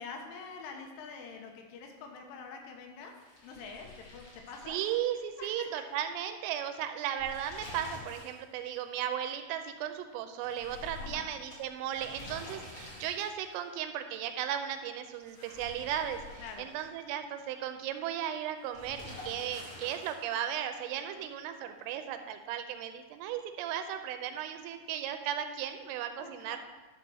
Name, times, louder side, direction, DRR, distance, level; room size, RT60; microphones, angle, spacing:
voice 1, 0.0-3.1 3.4-4.8 5.4-5.8 11.0-11.3 16.4-16.7 21.0-21.5 26.2-26.6, left 5 dB, 80° left, 2 dB, 3.5 m, -46 dB
sound 1, 3.1-5.6 5.9-6.0 7.0-8.4 8.7-8.8 10.4-13.5 15.1-17.1 18.7-20.4, left 2 dB, 40° left, 2.3 m, -48 dB
voice 2, 4.7-26.6, right 10 dB, 85° right, 8 dB, 3.2 m, -36 dB
12.0 x 4.5 x 6.2 m, 1.3 s
omnidirectional pair, 5.8 m